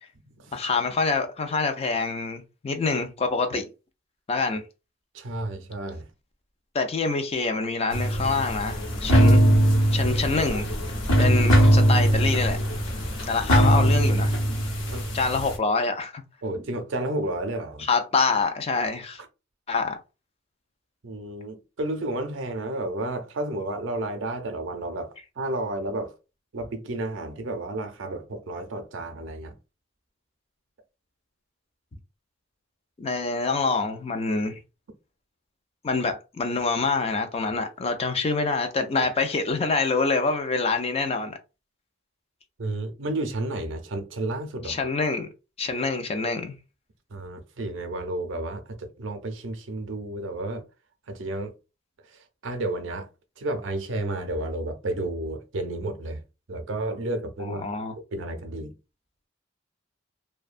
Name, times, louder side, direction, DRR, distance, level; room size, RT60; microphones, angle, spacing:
voice 1, 0.5-3.7 4.3-4.6 6.7-9.4 9.9-10.7 11.2-12.6 13.3-14.4 15.1-16.2 17.8-19.2 19.7-20.0 33.0-34.6 35.8-41.4 44.6-45.3 45.6-46.6 57.4-57.9, left 4 dB, 30° left, 0.4 m, -26 dB
voice 2, 5.1-6.0 14.9-15.1 16.4-17.9 21.0-26.1 26.5-29.5 42.6-44.8 47.1-50.6 51.1-51.5 52.4-53.1 53.4-56.2 56.5-57.7 58.1-58.7, right 2 dB, 65° right, 0.5 m, -31 dB
sound 1, 7.9-15.5, right 1 dB, 80° left, 0.9 m, -21 dB
2.6 x 2.2 x 2.4 m
head